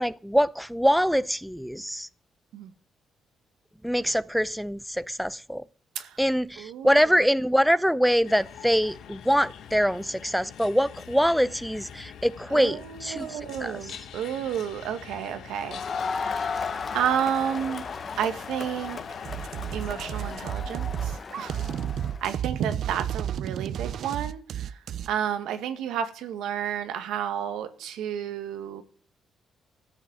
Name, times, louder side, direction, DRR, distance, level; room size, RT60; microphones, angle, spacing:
voice 1, 0.0-2.1 3.8-5.7 6.2-14.0, equal, ahead, 0.6 m, -24 dB
voice 2, 6.6-7.0 12.5-15.8 16.2-16.6 16.9-17.8 18.2-19.0 19.7-21.6 22.2-24.8 25.1-28.8, right 9 dB, 85° right, 1.9 m, -31 dB
sound 1, 8.2-20.5, left 8 dB, 75° left, 1.6 m, -45 dB
Crowd, 15.6-22.2, left 5 dB, 40° left, 1.3 m, -35 dB
sound 2, 19.2-25.1, right 9 dB, 65° right, 0.6 m, -32 dB
14.0 x 6.9 x 9.4 m
cardioid pair, 90°, 0 cm